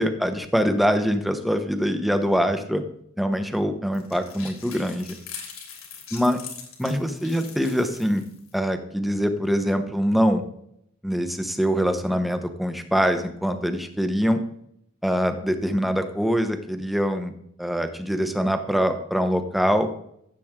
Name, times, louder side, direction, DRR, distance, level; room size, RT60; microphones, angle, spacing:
voice 1, 0.0-2.8 3.2-5.1 6.1-6.4 6.8-8.2 8.5-10.4 11.0-14.4 15.0-17.3 17.6-19.9, equal, ahead, 7 dB, 0.9 m, -24 dB
sound 1, 3.9-8.6, left 6 dB, 90° left, 2.9 m, -42 dB
15.0 x 7.7 x 3.7 m, 0.71 s
head